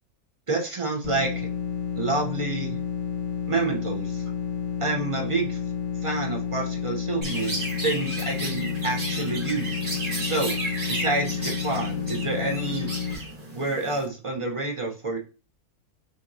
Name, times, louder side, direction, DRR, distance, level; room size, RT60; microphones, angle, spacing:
voice 1, 0.5-1.5 2.0-2.8 3.5-4.2 4.8-5.6 6.0-9.8 10.2-10.5 10.9-12.9 13.5-15.2, right 3 dB, 45° right, 2 dB, 0.4 m, -28 dB
sound 1, 1.0-13.1, left 7 dB, 80° left, 1.7 m, -30 dB
Chirp tweet, 7.2-14.0, right 1 dB, 30° right, 1.3 m, -33 dB
6.0 x 2.9 x 2.6 m, 0.33 s
omnidirectional pair, 1.6 m